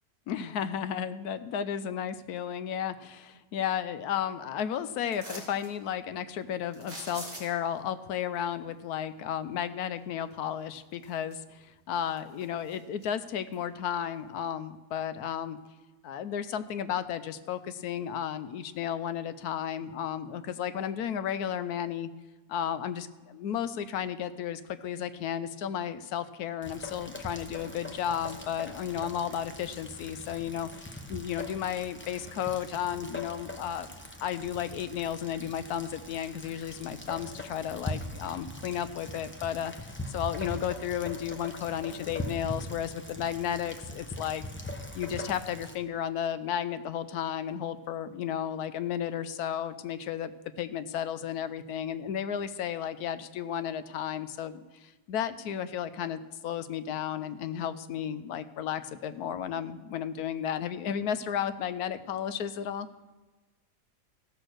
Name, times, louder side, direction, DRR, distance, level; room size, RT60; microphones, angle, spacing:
voice 1, 0.3-15.6 16.0-22.1 22.5-33.9 34.2-44.4 44.9-50.3 50.6-62.9, left 9 dB, 75° left, 13 dB, 1.1 m, -33 dB
sound 1, 5.1-5.7 6.7-7.8 10.3-10.4 10.9-11.6 12.0-13.1 13.5-13.6, right 1 dB, 35° right, 3.2 m, -44 dB
Rain, 26.6-45.8, left 1 dB, 10° left, 0.7 m, -41 dB
15.5 x 6.2 x 6.4 m, 1.2 s
omnidirectional pair, 1.7 m